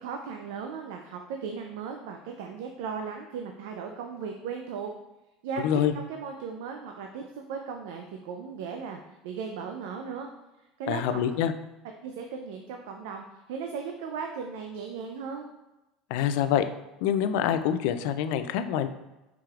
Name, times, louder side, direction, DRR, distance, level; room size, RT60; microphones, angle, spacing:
voice 1, 0.0-4.9 5.4-10.3 10.8-11.2 12.0-15.5, right 6 dB, 85° right, 3 dB, 0.4 m, -37 dB
voice 2, 5.6-5.9 10.9-11.5 16.1-16.7 17.0-18.9, left 9 dB, 75° left, 10 dB, 0.3 m, -26 dB
4.9 x 4.6 x 2.4 m, 1.0 s
supercardioid pair, 115°, 0 cm